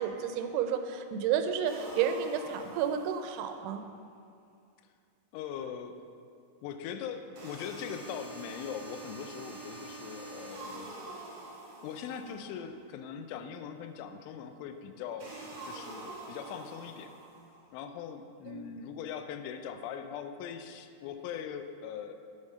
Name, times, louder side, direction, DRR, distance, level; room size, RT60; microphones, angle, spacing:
voice 1, 0.0-3.8 18.5-18.7, right 8 dB, 90° right, 7 dB, 3.1 m, -31 dB
sound 1, 1.6-3.6 7.3-12.6 15.2-17.6, right 2 dB, 55° right, 3.5 m, -46 dB
voice 2, 5.3-6.0 6.6-11.0 11.8-15.4 15.6-17.2 17.7-22.2, left 8 dB, 90° left, 8 dB, 3.0 m, -41 dB
7.8 x 7.2 x 5.4 m, 2.4 s
omnidirectional pair, 5.4 m